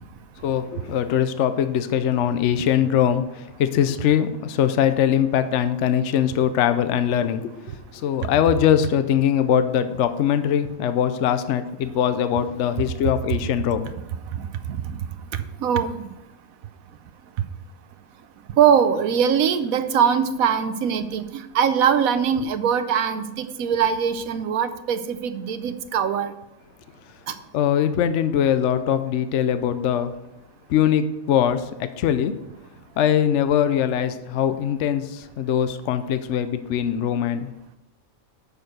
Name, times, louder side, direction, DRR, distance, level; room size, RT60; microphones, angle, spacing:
voice 1, 0.4-7.5 7.9-13.9 27.5-30.1 30.7-32.3 33.0-37.5, left 9 dB, 65° left, 11 dB, 0.9 m, -22 dB
voice 2, 15.6-16.1 18.6-26.3, right 7 dB, 90° right, 10 dB, 1.2 m, -22 dB
7.0 x 6.5 x 7.8 m, 0.95 s
omnidirectional pair, 1.4 m